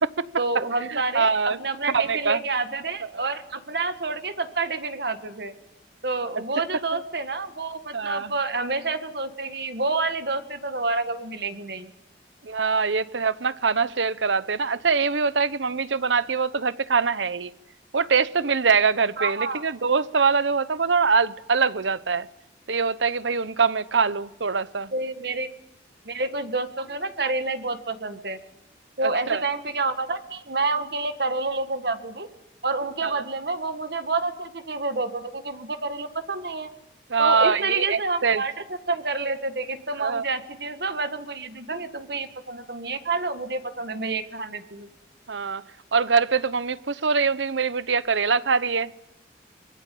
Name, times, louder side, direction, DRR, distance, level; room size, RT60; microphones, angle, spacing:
voice 1, 0.4-5.5 6.0-11.9 19.2-19.6 24.9-25.5 26.0-28.4 29.0-32.3 32.6-36.7 37.2-38.5 38.9-44.9, right 3 dB, 60° right, 1.8 m, -28 dB
voice 2, 0.9-1.6 1.9-2.4 3.1-3.2 6.9-7.0 7.9-8.3 12.4-17.5 17.9-22.3 22.7-24.9 29.0-29.4 33.0-33.2 37.1-38.4 40.0-40.3 45.3-45.6 45.9-48.9, right 5 dB, 80° right, 0.9 m, -23 dB
25.5 x 22.0 x 8.5 m
head